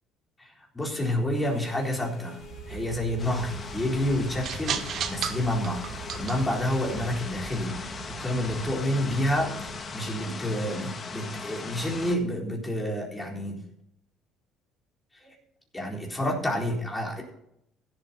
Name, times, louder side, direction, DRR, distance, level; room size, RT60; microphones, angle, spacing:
voice 1, 0.4-2.4 2.7-13.6 15.1-15.3 15.7-17.2, left 1 dB, 15° left, -1 dB, 4.0 m, -29 dB
sound 1, 1.3-7.5, left 4 dB, 55° left, 4.0 m, -47 dB
sound 2, 2.4-9.8, right 8 dB, 55° right, 1.2 m, -38 dB
sound 3, 3.2-12.2, left 4 dB, 35° left, 2.0 m, -38 dB
16.0 x 8.3 x 4.2 m, 0.76 s
cardioid pair, 110°, 0 cm